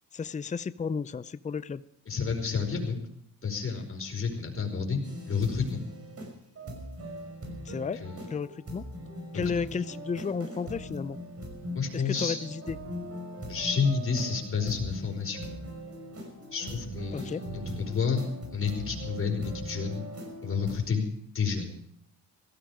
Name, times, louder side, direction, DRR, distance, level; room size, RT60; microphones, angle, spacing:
voice 1, 0.1-1.8 7.6-8.0 8.3-8.8 9.3-11.2 11.9-12.8 17.1-17.4, left 5 dB, 20° left, 16 dB, 0.6 m, -33 dB
voice 2, 2.1-3.0 3.4-5.0 5.2-5.8 8.0-8.3 11.7-12.4 13.5-15.4 16.5-18.2 18.5-20.0 20.4-21.1 21.3-21.7, left 5 dB, 35° left, 1 dB, 5.2 m, -30 dB
sound 1, 5.0-20.8, equal, 40° right, 5.9 m, -40 dB
17.0 x 14.5 x 5.0 m, 0.72 s
cardioid pair, 85°, 37 cm